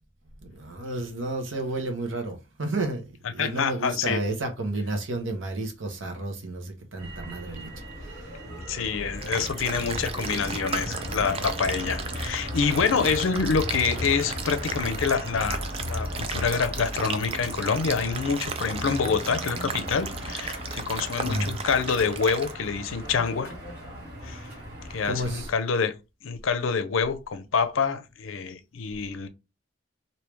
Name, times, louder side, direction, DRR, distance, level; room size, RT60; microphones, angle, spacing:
voice 1, 0.4-8.3 21.2-21.6 25.1-25.5, right 2 dB, 75° right, 0.9 m, -31 dB
voice 2, 3.4-4.2 8.7-23.5 24.2-24.4 24.9-25.9 26.2-29.3, left 5 dB, 80° left, 0.5 m, -27 dB
Motor vehicle (road), 7.0-25.5, equal, 50° right, 2.2 m, -36 dB
sound 1, 9.2-22.5, right 5 dB, 30° right, 0.4 m, -36 dB
3.4 x 2.7 x 3.1 m
head